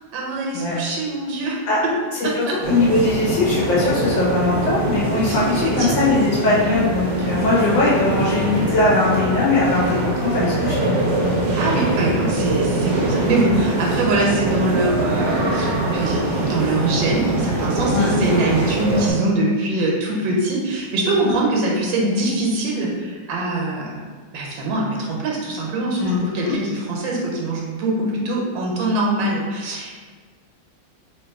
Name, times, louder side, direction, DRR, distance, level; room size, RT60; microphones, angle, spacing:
voice 1, 0.1-1.9 2.2-2.5 5.3-5.4 5.7-6.1 11.5-24.0 24.3-30.0, right 2 dB, 85° right, -2 dB, 1.5 m, -23 dB
voice 2, 2.4-11.0 14.0-14.1 17.9-18.1 21.2-21.4 26.0-26.5, left 3 dB, 80° left, -6 dB, 1.5 m, -20 dB
sound 1, 2.6-19.1, right 2 dB, 55° right, 0.9 m, -22 dB
3.3 x 3.0 x 3.4 m, 1.5 s
omnidirectional pair, 2.0 m